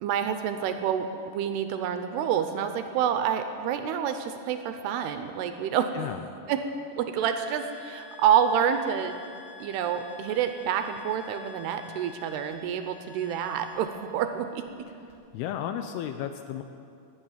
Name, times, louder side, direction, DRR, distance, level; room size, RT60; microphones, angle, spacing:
voice 1, 0.0-5.9 6.5-6.6 7.0-9.2 9.6-14.9, right 8 dB, 80° right, 8 dB, 2.6 m, -28 dB
sound 1, 7.2-14.7 15.1-15.2, left 5 dB, 60° left, 3.7 m, -49 dB
voice 2, 15.3-16.6, left 10 dB, 80° left, 8 dB, 2.4 m, -33 dB
20.5 x 8.8 x 7.3 m, 2.5 s
omnidirectional pair, 5.0 m